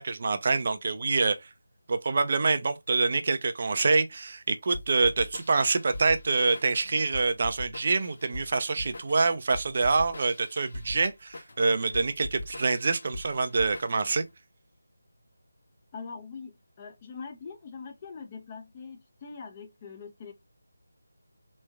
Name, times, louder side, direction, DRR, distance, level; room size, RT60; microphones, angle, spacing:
voice 1, 0.0-1.5 1.9-14.2, right 4 dB, 45° right, 0.4 m, -26 dB
sound 1, 4.7-14.3, left 1 dB, 55° left, 0.8 m, -42 dB
voice 2, 15.9-20.3, left 5 dB, 25° left, 0.5 m, -43 dB
3.4 x 3.1 x 2.2 m
figure-of-eight pair, 165°, 0 cm